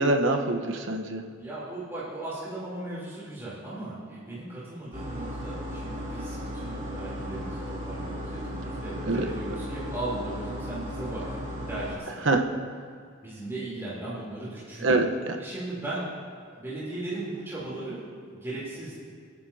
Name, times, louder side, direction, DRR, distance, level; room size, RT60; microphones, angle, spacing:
voice 1, 0.0-1.2 9.1-9.6 12.2-12.4 14.8-15.4, right 2 dB, 65° right, 4 dB, 1.1 m, -25 dB
voice 2, 1.4-12.3 13.2-15.0 15.4-16.1 16.5-18.0 18.3-19.0, right 2 dB, 15° right, -10 dB, 3.5 m, -37 dB
sound 1, 4.9-11.9, equal, 40° right, 3.3 m, -36 dB
27.5 x 9.6 x 2.8 m, 2.1 s
head